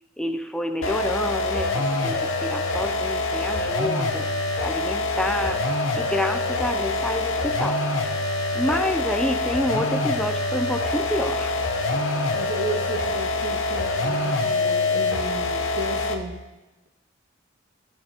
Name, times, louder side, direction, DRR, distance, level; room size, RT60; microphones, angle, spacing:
voice 1, 0.2-4.3 4.6-5.6 6.0-7.8 8.5-11.6, left 1 dB, 5° left, 6 dB, 0.4 m, -28 dB
sound 1, 0.8-16.3, left 2 dB, 70° left, 0.9 m, -25 dB
voice 2, 12.3-16.4, right 1 dB, 75° right, 2 dB, 1.6 m, -33 dB
14.0 x 8.9 x 2.9 m, 1.1 s
head